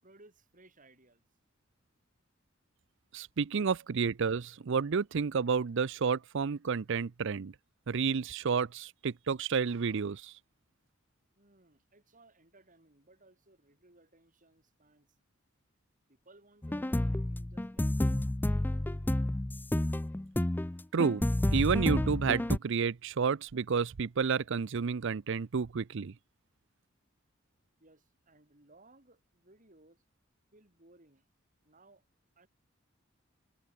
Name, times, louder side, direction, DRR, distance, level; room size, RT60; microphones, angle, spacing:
voice 1, 0.0-1.2 11.4-15.2 16.1-18.6 27.8-30.0 30.5-31.2 31.6-32.0 32.4-32.5, right 2 dB, 40° right, 6.9 m, -62 dB
voice 2, 3.1-7.5 7.9-10.3 20.9-21.3 21.5-26.1, right 5 dB, 65° right, 0.5 m, -30 dB
sound 1, 16.6-22.6, left 1 dB, 10° left, 0.4 m, -30 dB
head